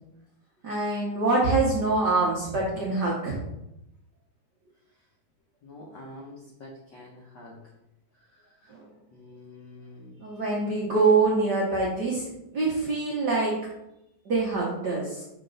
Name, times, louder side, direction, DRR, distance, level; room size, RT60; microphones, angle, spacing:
voice 1, 0.6-3.4 8.7-8.8 10.2-12.3 12.5-13.5 14.3-15.2, right 3 dB, 75° right, -4 dB, 0.9 m, -24 dB
voice 2, 5.6-7.6 8.6-8.7 9.1-10.1, left 1 dB, 70° left, -3 dB, 1.0 m, -46 dB
6.0 x 4.4 x 3.9 m, 0.87 s
omnidirectional pair, 3.3 m